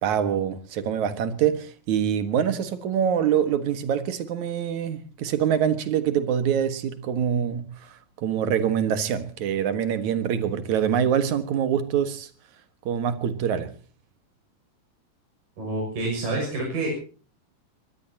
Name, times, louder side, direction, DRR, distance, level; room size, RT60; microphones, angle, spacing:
voice 1, 0.0-12.3 12.9-13.7, right 8 dB, 65° right, 2.8 m, -25 dB
voice 2, 15.6-16.9, right 2 dB, 80° right, 8.2 m, -28 dB
23.0 x 21.5 x 2.8 m
omnidirectional pair, 3.8 m